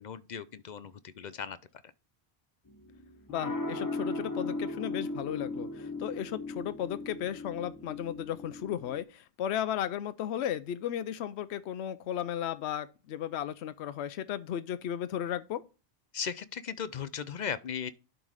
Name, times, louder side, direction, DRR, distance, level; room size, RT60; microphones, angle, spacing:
voice 1, 0.0-1.6 16.1-17.9, left 7 dB, 50° left, 0.6 m, -37 dB
sound 1, 2.7-9.0, left 2 dB, 20° left, 1.0 m, -37 dB
voice 2, 3.3-15.6, left 10 dB, 80° left, 0.9 m, -35 dB
11.0 x 3.8 x 4.8 m
omnidirectional pair, 1.1 m